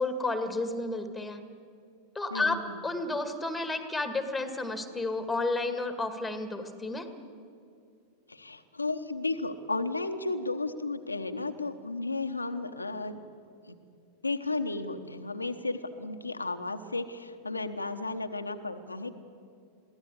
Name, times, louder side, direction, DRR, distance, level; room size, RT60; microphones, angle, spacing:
voice 1, 0.0-1.4 2.2-7.1, left 2 dB, 5° left, 8 dB, 2.0 m, -31 dB
voice 2, 2.3-2.8 8.3-13.2 13.7-13.8 14.2-19.1, left 3 dB, 80° left, 6 dB, 1.0 m, -33 dB
23.0 x 16.0 x 8.5 m, 2.4 s
figure-of-eight pair, 90°, 0 cm